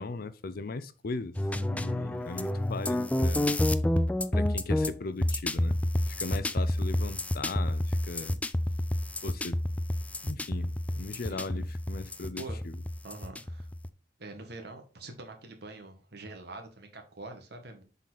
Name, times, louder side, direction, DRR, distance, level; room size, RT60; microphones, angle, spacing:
voice 1, 0.0-1.4 1.7-3.5 4.3-5.8 6.2-8.4 9.2-9.6 10.2-12.8, left 3 dB, 55° left, 0.6 m, -38 dB
sound 1, 1.4-13.9, left 1 dB, 10° left, 0.3 m, -29 dB
voice 2, 11.3-11.6 12.3-12.6 13.0-13.7 14.2-17.8, right 2 dB, 60° right, 1.6 m, -45 dB
7.3 x 4.1 x 4.0 m
head